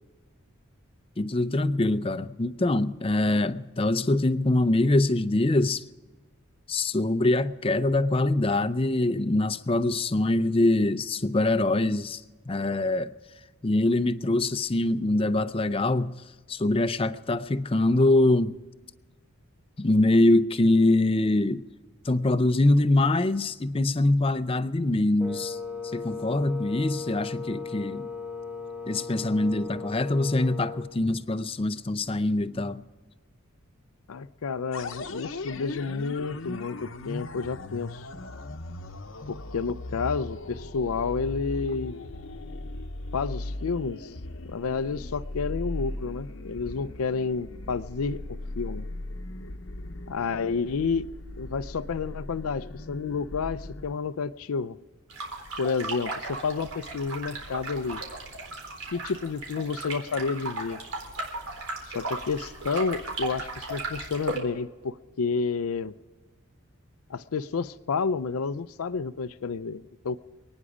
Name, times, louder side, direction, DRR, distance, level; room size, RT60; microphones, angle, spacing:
voice 1, 1.2-5.8 6.7-13.1 13.6-16.2 16.5-18.5 19.8-21.7 22.0-25.6 25.8-28.1 28.9-32.8, left 2 dB, 25° left, 0.5 m, -24 dB
Wind instrument woodwind instrument, 25.2-31.0, left 4 dB, 5° right, 0.9 m, -37 dB
voice 2, 34.1-38.0 39.3-42.0 43.1-44.1 44.5-48.9 50.1-51.1 51.4-54.8 55.6-58.0 58.9-60.8 61.9-65.9 67.1-70.2, left 5 dB, 80° left, 0.5 m, -30 dB
sound 1, 34.7-53.9, left 2 dB, 60° left, 0.9 m, -38 dB
sound 2, 55.1-64.4, right 2 dB, 85° right, 4.0 m, -36 dB
27.5 x 9.8 x 5.0 m
head